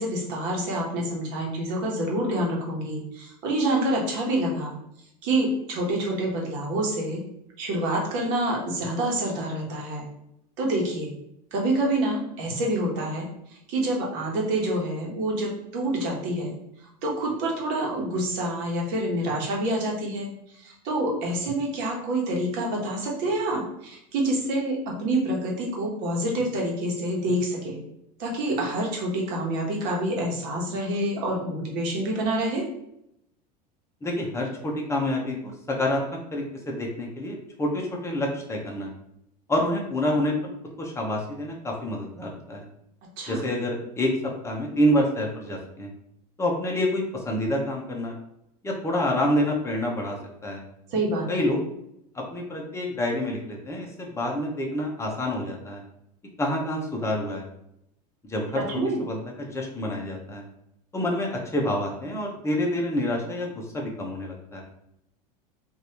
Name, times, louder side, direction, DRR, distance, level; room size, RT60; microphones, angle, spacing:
voice 1, 0.0-4.7 5.2-7.2 7.6-10.1 10.6-11.1 11.5-16.5 17.0-27.8 28.2-32.6 43.2-43.4 50.9-51.5 58.5-59.0, right 1 dB, 60° right, -1 dB, 1.2 m, -27 dB
voice 2, 34.0-36.0 36.3-38.9 39.5-40.5 40.8-42.7 43.3-44.1 44.4-45.9 46.4-48.1 48.6-50.6 51.3-51.6 52.1-55.8 56.4-57.5 58.3-60.4 60.9-64.6, left 1 dB, 15° left, -1 dB, 0.9 m, -27 dB
3.1 x 2.6 x 2.9 m, 0.79 s
hypercardioid pair, 100°, 21 cm